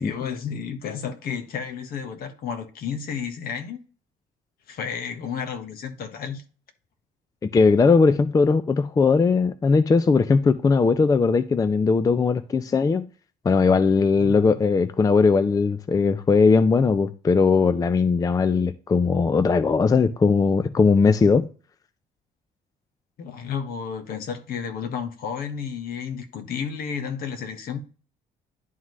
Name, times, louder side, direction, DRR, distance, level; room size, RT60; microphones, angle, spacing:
voice 1, 0.0-3.8 4.7-6.4 14.1-14.4 23.2-27.8, left 7 dB, 60° left, 1.3 m, -32 dB
voice 2, 7.5-13.1 13.4-21.5, left 4 dB, 20° left, 0.4 m, -19 dB
11.0 x 3.7 x 3.1 m
cardioid pair, 110°, 17 cm